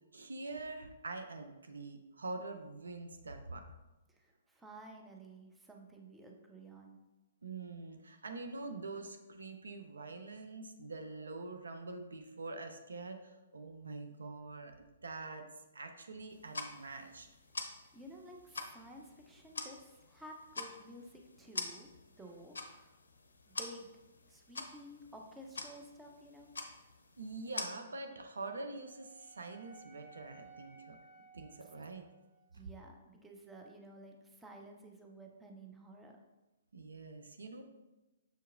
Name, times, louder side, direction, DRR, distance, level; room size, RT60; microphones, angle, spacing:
voice 1, 0.1-3.6 7.4-15.4 15.7-17.3 27.2-31.0 31.3-32.0 36.7-37.6, right 3 dB, 80° right, 6 dB, 0.4 m, -45 dB
voice 2, 4.1-7.0 17.9-21.9 22.2-23.0 23.5-23.9 24.3-26.5 32.5-36.2, right 1 dB, 10° right, 1 dB, 0.6 m, -53 dB
sound 1, 16.3-27.7, left 3 dB, 80° left, 0.5 m, -46 dB
Wind instrument woodwind instrument, 28.3-32.5, right 4 dB, 10° left, 1.0 m, -59 dB
6.4 x 2.8 x 2.5 m, 1.1 s
figure-of-eight pair, 125°, 0 cm